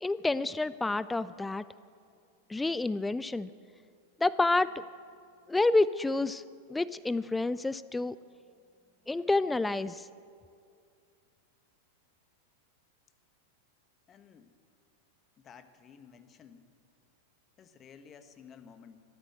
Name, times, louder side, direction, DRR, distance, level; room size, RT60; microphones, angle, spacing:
voice 1, 0.0-1.6 2.5-3.5 4.2-4.8 5.5-6.4 6.7-8.2 9.1-10.1, left 2 dB, 10° left, 17 dB, 0.3 m, -28 dB
voice 2, 14.1-14.5 15.4-16.7 17.6-19.0, left 7 dB, 30° left, 10 dB, 1.2 m, -54 dB
14.5 x 13.0 x 7.7 m, 2.3 s
figure-of-eight pair, 95°, 0 cm